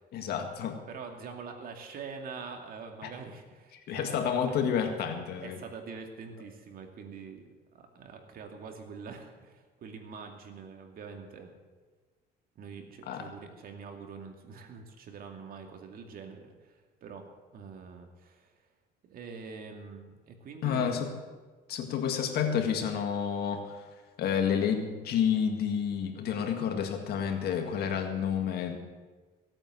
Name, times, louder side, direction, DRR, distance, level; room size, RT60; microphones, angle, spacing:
voice 1, 0.1-0.8 3.0-3.1 3.9-5.6 13.1-13.3 20.6-21.1 21.7-23.8 24.2-28.8, left 7 dB, 70° left, 5 dB, 1.9 m, -30 dB
voice 2, 0.9-4.6 5.4-11.6 12.6-18.5 19.0-21.0, right 5 dB, 60° right, 4 dB, 2.4 m, -45 dB
17.5 x 8.9 x 7.7 m, 1.4 s
cardioid pair, 110°, 17 cm